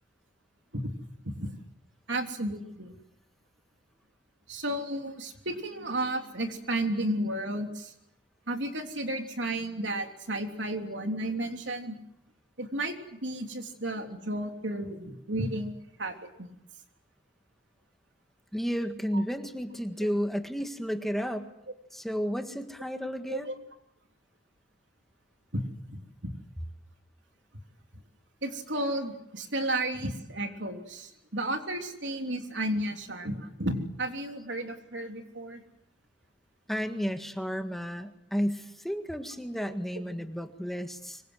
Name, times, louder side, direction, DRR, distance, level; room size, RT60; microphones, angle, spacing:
voice 1, 2.1-2.9 4.5-7.9 8.5-12.0 12.6-15.7 16.0-16.5 19.1-19.2 23.3-23.6 25.5-25.6 25.9-26.3 28.4-35.6, right 1 dB, 75° right, 4 dB, 3.3 m, -33 dB
voice 2, 18.5-21.5 21.9-23.5 36.7-41.2, equal, ahead, 6 dB, 1.8 m, -32 dB
25.5 x 23.0 x 8.0 m, 0.80 s
head